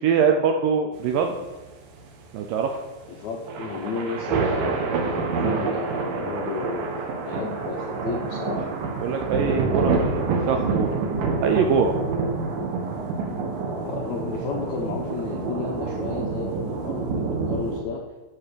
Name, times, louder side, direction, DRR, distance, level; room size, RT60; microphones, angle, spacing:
voice 1, 0.0-1.4 2.3-2.7 9.0-11.0 11.4-12.0, right 6 dB, 80° right, 4 dB, 2.0 m, -23 dB
sound 1, 1.0-17.8, right 4 dB, 60° right, 2.7 m, -27 dB
voice 2, 3.1-6.9 7.2-8.7 13.7-18.0, left 5 dB, 75° left, 0 dB, 1.7 m, -33 dB
12.0 x 5.4 x 6.9 m, 1.2 s
omnidirectional pair, 4.7 m